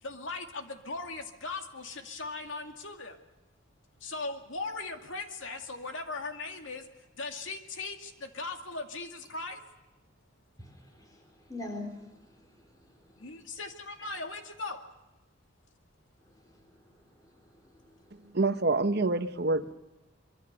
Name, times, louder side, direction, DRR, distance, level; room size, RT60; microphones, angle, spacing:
voice 1, 0.0-3.2 4.0-9.6 13.2-14.8, left 3 dB, 85° left, 2.3 m, -39 dB
voice 2, 10.6-13.1 16.3-18.2, left 2 dB, 20° left, 4.4 m, -46 dB
voice 3, 18.3-19.7, right 3 dB, 55° right, 1.0 m, -26 dB
24.0 x 24.0 x 6.8 m
head